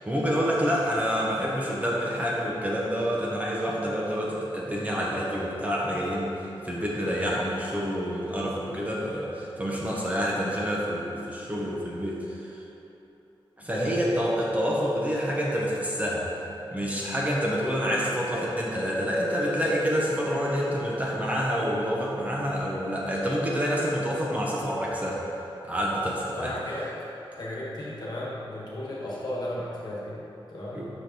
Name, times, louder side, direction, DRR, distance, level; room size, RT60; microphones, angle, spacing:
voice 1, 0.1-6.3 6.6-12.6 13.6-16.3 16.7-25.2 25.6-26.5 30.7-30.9, equal, 15° right, -5 dB, 0.9 m, -27 dB
voice 2, 13.6-14.1 26.3-26.9 27.4-30.2 30.5-30.8, left 1 dB, 50° left, -7 dB, 1.6 m, -35 dB
6.3 x 4.5 x 5.2 m, 3.0 s
wide cardioid pair, 150°, 9 cm